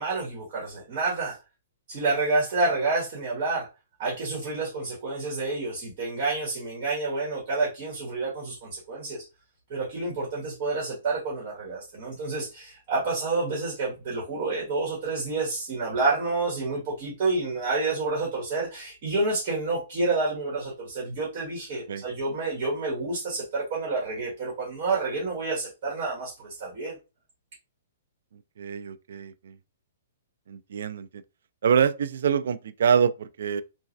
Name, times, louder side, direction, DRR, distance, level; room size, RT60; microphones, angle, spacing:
voice 1, 0.0-1.4 1.9-3.7 4.0-9.2 9.7-27.0, right 3 dB, 30° right, 1.2 m, -29 dB
voice 2, 28.6-29.6 30.5-31.2 31.6-33.6, right 7 dB, 60° right, 0.3 m, -25 dB
3.1 x 2.2 x 2.5 m
hypercardioid pair, 180°, 0 cm